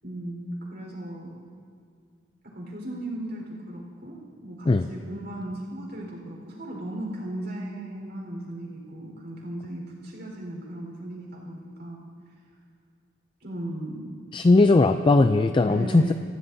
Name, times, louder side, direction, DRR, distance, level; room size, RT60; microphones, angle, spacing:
voice 1, 0.0-1.3 2.4-12.0 13.4-14.1 15.7-16.1, right 1 dB, 55° right, -2 dB, 4.4 m, -36 dB
voice 2, 14.3-16.1, left 3 dB, 25° left, 9 dB, 0.3 m, -19 dB
25.5 x 16.0 x 2.7 m, 2.2 s
head